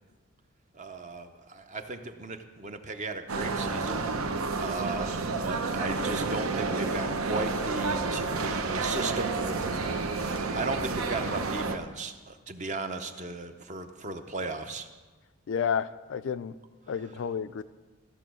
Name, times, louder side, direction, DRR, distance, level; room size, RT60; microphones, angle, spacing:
voice 1, 0.7-4.1 4.6-10.0 10.5-14.9, right 3 dB, 35° right, 7 dB, 0.6 m, -36 dB
sound 1, 3.3-11.8, right 3 dB, 75° right, 0.8 m, -30 dB
voice 2, 15.5-16.6 16.9-17.6, left 7 dB, 60° left, 14 dB, 0.3 m, -31 dB
14.0 x 6.9 x 6.1 m, 1.3 s
head